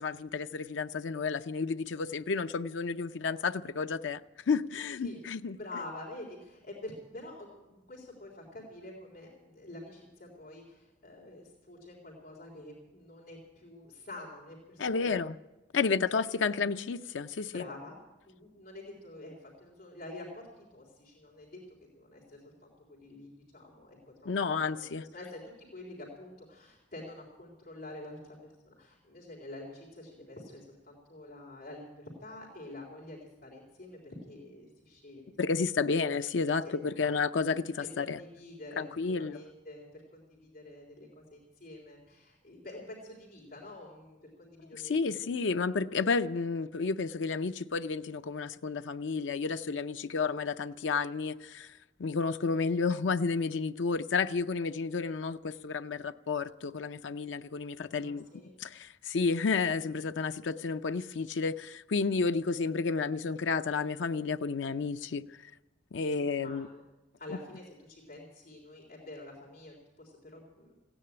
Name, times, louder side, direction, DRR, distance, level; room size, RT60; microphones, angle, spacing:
voice 1, 0.0-4.2 4.5-5.6 14.8-15.4 15.7-17.6 24.2-25.0 35.4-38.2 38.8-39.4 44.8-51.7 52.0-58.3 58.6-65.5 65.9-66.7 67.3-67.4, left 4 dB, 85° left, 0.5 m, -31 dB
voice 2, 5.5-15.0 16.0-16.3 17.5-21.6 21.9-25.4 25.7-35.3 36.6-37.1 37.8-38.9 39.2-45.3 58.0-58.6 66.4-66.8 67.2-70.7, left 2 dB, 55° left, 3.6 m, -47 dB
16.5 x 10.0 x 8.7 m
head